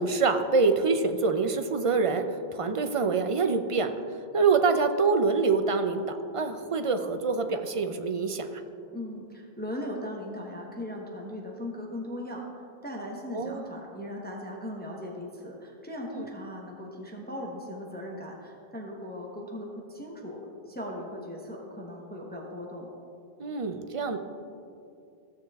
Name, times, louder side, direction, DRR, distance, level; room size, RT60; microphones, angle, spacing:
voice 1, 0.0-3.9 4.3-8.5 13.3-13.6 16.1-16.3 23.4-24.2, right 4 dB, 40° right, 7 dB, 0.5 m, -25 dB
voice 2, 8.9-12.5 12.8-22.9, left 1 dB, 10° left, -1 dB, 1.0 m, -38 dB
15.5 x 6.6 x 3.5 m, 2.6 s
omnidirectional pair, 1.0 m